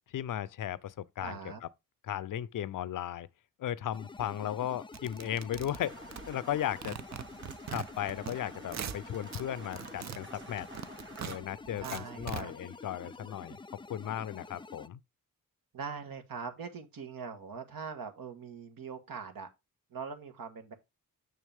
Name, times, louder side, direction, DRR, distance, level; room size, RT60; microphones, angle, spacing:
voice 1, 0.1-1.4 2.0-3.3 3.6-7.0 7.7-10.7 11.2-13.6 13.9-15.0, left 11 dB, 65° left, 0.6 m, -36 dB
voice 2, 1.2-1.6 11.8-12.5 15.7-19.5 19.9-20.7, right 6 dB, 75° right, 1.5 m, -42 dB
sound 1, 3.9-14.9, left 3 dB, 15° left, 0.4 m, -49 dB
sound 2, 4.9-6.6 6.8-8.4 8.6-9.4 9.7-12.4, right 8 dB, 50° right, 0.7 m, -41 dB
sound 3, 5.8-11.4, right 3 dB, 35° right, 1.9 m, -51 dB
6.5 x 6.1 x 3.5 m
supercardioid pair, 55°, 35 cm